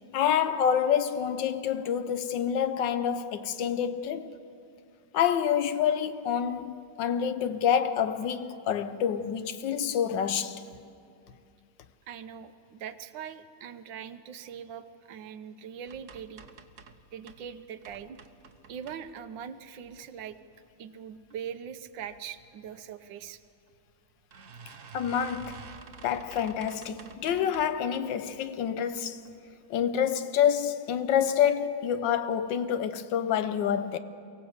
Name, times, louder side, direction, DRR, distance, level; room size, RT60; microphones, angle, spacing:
voice 1, 0.1-4.4 5.1-10.6 24.9-25.7 26.0-29.3 29.7-34.0, left 8 dB, 85° left, 1.5 m, -27 dB
voice 2, 12.1-16.4 17.1-18.2 18.7-20.4 20.8-23.4, right 8 dB, 90° right, 1.5 m, -41 dB
sound 1, 15.9-17.5 17.8-19.4 19.9-20.5 21.0-21.4 21.6-21.7 22.0-22.1 23.2-23.3 23.7-23.8 24.3-27.9 28.3-28.7 29.2-29.3 29.7-29.8, right 5 dB, 50° right, 1.1 m, -50 dB
23.5 x 16.5 x 8.0 m
omnidirectional pair, 1.9 m